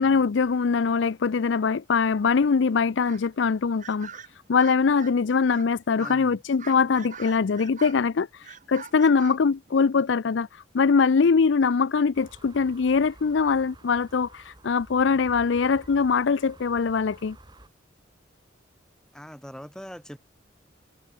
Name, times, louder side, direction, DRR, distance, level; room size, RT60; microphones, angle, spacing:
voice 1, 0.0-4.1 4.5-17.4, left 5 dB, 70° left, 0.5 m, -22 dB
sound 1, 3.0-3.3 3.8-5.1 5.5-5.7 6.0-6.2 6.6-8.0 8.4-10.0, right 6 dB, 40° right, 1.9 m, -44 dB
voice 2, 6.0-6.4 19.1-20.2, equal, 5° left, 7.8 m, -42 dB
sound 2, 12.1-17.7, right 1 dB, 20° right, 7.1 m, -51 dB
head